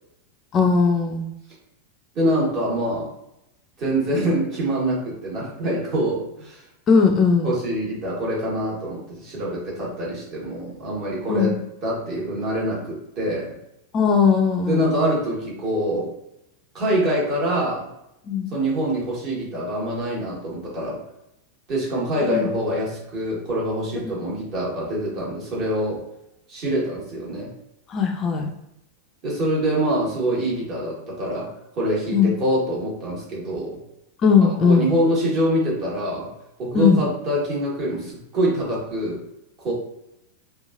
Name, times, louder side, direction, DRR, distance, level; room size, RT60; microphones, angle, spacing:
voice 1, 0.5-1.3 6.9-7.5 11.3-11.6 13.9-15.1 18.3-18.5 22.3-22.5 27.9-28.5 32.1-32.3 34.2-34.9 36.7-37.0, left 5 dB, 30° left, 3 dB, 0.3 m, -18 dB
voice 2, 2.1-3.1 3.8-6.6 7.4-13.6 14.7-16.1 16.7-17.9 18.5-21.0 21.7-26.0 26.5-27.5 29.2-33.8 34.4-36.3 36.6-39.2 39.6-39.7, right 1 dB, 40° right, -5 dB, 1.3 m, -25 dB
2.9 x 2.3 x 2.4 m, 0.84 s
figure-of-eight pair, 90°, 0 cm